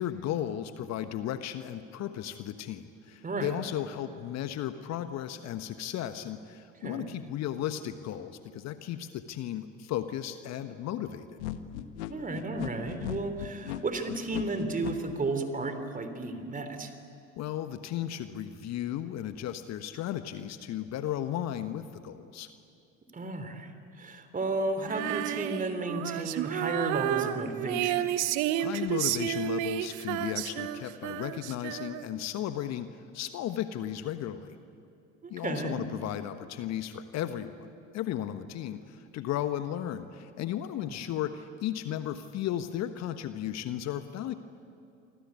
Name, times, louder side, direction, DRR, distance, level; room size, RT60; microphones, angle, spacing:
voice 1, 0.0-11.4 17.4-22.5 28.6-34.6 35.3-44.3, left 11 dB, 45° left, 10 dB, 1.3 m, -35 dB
sound 1, 11.4-14.9, left 14 dB, 65° left, 1.5 m, -37 dB
voice 2, 12.1-16.9 23.1-28.1 35.2-35.8 40.9-41.0, right 3 dB, 20° right, 8 dB, 3.7 m, -33 dB
Female singing, 24.9-32.2, right 12 dB, 55° right, 1.3 m, -31 dB
28.0 x 25.0 x 8.5 m, 2.5 s
figure-of-eight pair, 70°, 37 cm